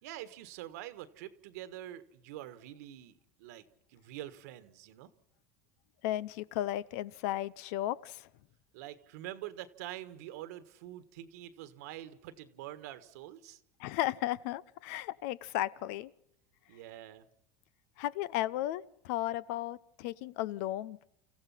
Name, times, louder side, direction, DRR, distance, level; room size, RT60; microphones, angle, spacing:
voice 1, 0.0-3.6 3.9-5.1 8.7-13.6 16.7-17.2, right 13 dB, 80° right, 1.6 m, -46 dB
voice 2, 6.0-8.3 13.8-16.1 18.0-21.0, left 14 dB, 75° left, 0.8 m, -35 dB
29.5 x 15.0 x 5.8 m
supercardioid pair, 120°, 9 cm